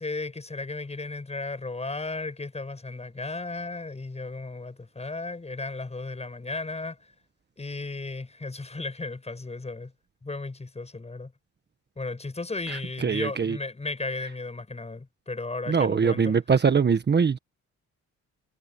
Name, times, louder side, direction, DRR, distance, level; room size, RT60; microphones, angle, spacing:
voice 1, 0.0-7.0 7.6-9.9 10.2-11.3 12.0-16.3, left 3 dB, 20° left, 8.0 m, -35 dB
voice 2, 13.0-13.6 15.7-17.4, right 6 dB, 35° right, 1.4 m, -22 dB
cardioid pair, 90°, 30 cm